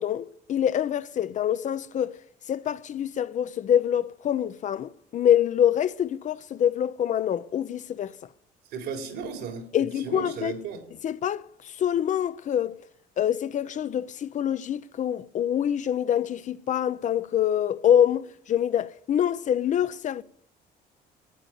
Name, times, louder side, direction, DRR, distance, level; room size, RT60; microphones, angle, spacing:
voice 1, 0.0-2.2 2.5-8.2 9.7-10.6 11.0-12.8 13.2-20.2, left 10 dB, 45° left, 0.7 m, -25 dB
voice 2, 8.7-9.6 10.0-10.8, right 6 dB, 85° right, 4.3 m, -34 dB
13.0 x 9.1 x 9.6 m
cardioid pair, 110°, 17 cm